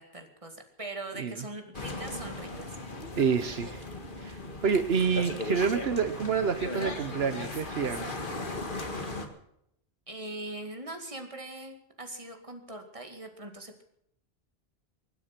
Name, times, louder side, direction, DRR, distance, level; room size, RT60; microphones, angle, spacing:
voice 1, 0.0-2.8 10.1-13.8, right 2 dB, 30° right, 5 dB, 2.3 m, -41 dB
sound 1, 1.7-9.3, left 2 dB, 55° left, 2.0 m, -37 dB
voice 2, 3.2-3.8 4.2-8.1, right 6 dB, 75° right, 10 dB, 1.2 m, -28 dB
24.5 x 9.7 x 5.9 m, 0.74 s
omnidirectional pair, 1.1 m